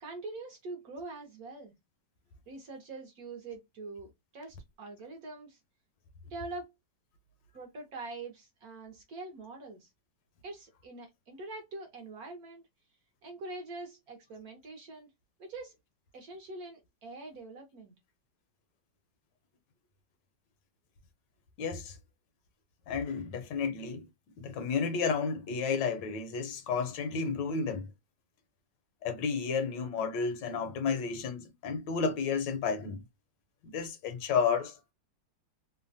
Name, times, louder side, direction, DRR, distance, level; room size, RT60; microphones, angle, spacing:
voice 1, 0.0-1.7 2.5-5.6 6.3-6.7 7.5-9.9 10.4-12.6 13.2-15.1 15.4-15.8 16.1-17.9, right 3 dB, 60° right, 1.0 m, -44 dB
voice 2, 21.6-22.0 22.9-24.1 24.4-27.9 29.0-33.0 33.6-34.8, left 5 dB, 75° left, 1.2 m, -32 dB
3.2 x 2.1 x 2.5 m
omnidirectional pair, 2.1 m